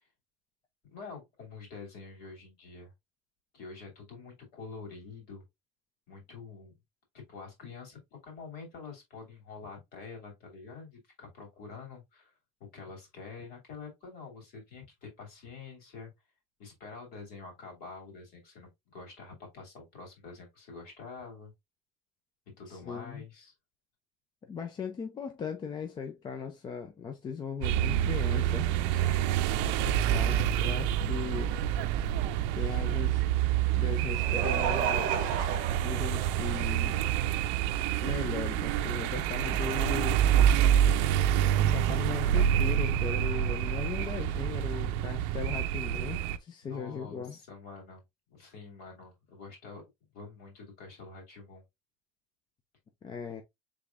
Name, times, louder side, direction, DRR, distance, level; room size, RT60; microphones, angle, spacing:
voice 1, 0.9-2.9 3.5-5.4 6.1-6.8 7.1-12.3 12.6-16.1 16.6-21.5 22.6-23.5 28.8-29.7 46.6-48.0 48.3-49.8 50.1-51.6, left 4 dB, 50° left, 2.7 m, -47 dB
voice 2, 22.7-23.3 24.5-28.7 29.8-31.5 32.6-33.2 33.7-35.3 35.8-37.0 38.0-40.2 41.6-47.4 53.0-53.4, left 6 dB, 20° left, 0.5 m, -38 dB
sound 1, 27.6-46.4, right 10 dB, 65° right, 0.5 m, -27 dB
Laughter, 33.7-36.9 37.7-37.8 39.3-39.4, right 7 dB, 45° right, 0.8 m, -34 dB
5.0 x 3.6 x 2.5 m
cardioid pair, 155°, 21 cm